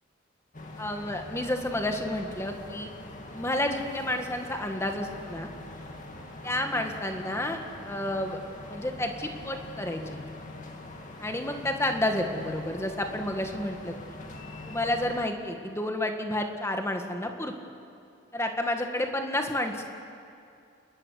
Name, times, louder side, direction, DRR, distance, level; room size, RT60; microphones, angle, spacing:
sound 1, 0.5-15.2, left 2 dB, 40° left, 2.4 m, -43 dB
voice 1, 0.8-2.9 3.3-5.5 6.4-7.6 7.8-8.4 8.7-10.0 11.2-13.9 14.7-17.5 18.3-19.8, left 1 dB, 15° left, 4 dB, 1.8 m, -30 dB
30.0 x 13.5 x 9.6 m, 2.5 s
head